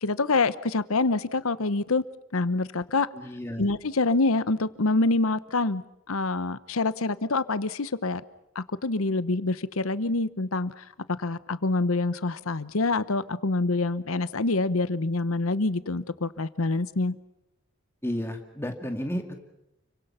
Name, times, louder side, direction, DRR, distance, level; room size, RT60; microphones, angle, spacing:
voice 1, 0.0-2.0 2.3-3.1 3.6-5.8 6.1-8.2 8.5-10.8 11.2-17.2, left 3 dB, 80° left, 1.0 m, -26 dB
voice 2, 3.1-3.7 18.0-19.3, equal, 10° left, 2.4 m, -32 dB
30.0 x 24.0 x 5.8 m
head